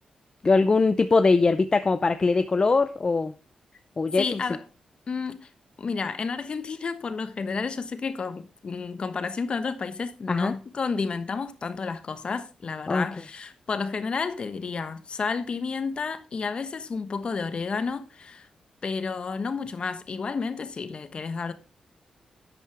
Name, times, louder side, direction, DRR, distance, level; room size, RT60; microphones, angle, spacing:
voice 1, 0.4-3.3 4.0-4.4 10.3-10.6 12.9-13.0, left 3 dB, 40° left, 0.6 m, -21 dB
voice 2, 4.1-4.6 5.1-5.5 5.8-18.5 18.8-21.5, left 5 dB, 55° left, 1.2 m, -31 dB
11.0 x 8.2 x 3.5 m
cardioid pair, 65°, 2 cm